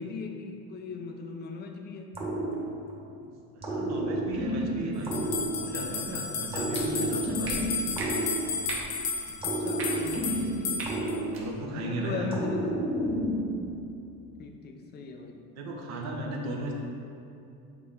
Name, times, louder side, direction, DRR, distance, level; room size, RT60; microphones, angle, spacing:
voice 1, 0.0-2.1 9.3-11.0 11.7-12.8 14.4-15.4, left 5 dB, 35° left, 4 dB, 0.5 m, -38 dB
sound 1, 2.1-3.1 3.6-6.0 6.5-8.9 9.4-11.8 12.3-13.8, right 1 dB, 20° right, 1.3 m, -31 dB
voice 2, 3.5-5.2 5.5-7.6 11.0-12.3 15.5-16.7, right 2 dB, 65° right, 0 dB, 1.0 m, -36 dB
sound 2, 5.1-11.2, left 5 dB, 80° left, 0.9 m, -33 dB
sound 3, 6.7-6.8 7.4-7.5 8.0-8.1 8.6-8.8 9.7-9.9 10.7-10.9 11.3-11.4, right 4 dB, 45° right, 1.2 m, -37 dB
7.9 x 3.3 x 3.6 m, 2.6 s
cardioid pair, 125°, 29 cm